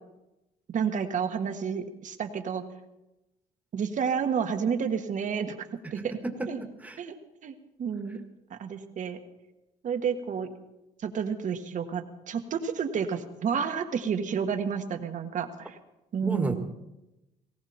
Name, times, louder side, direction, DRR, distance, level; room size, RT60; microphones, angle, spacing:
voice 1, 0.7-2.6 3.7-5.6 5.9-6.2 6.5-6.6 7.0-7.2 7.4-8.2 8.5-9.2 9.8-10.5 11.0-15.8 16.1-16.5, right 7 dB, 50° right, 7 dB, 1.7 m, -30 dB
voice 2, 6.0-7.0 16.2-16.5, right 2 dB, 10° right, 5 dB, 1.9 m, -32 dB
19.0 x 17.0 x 4.4 m, 0.97 s
cardioid pair, 110°, 17 cm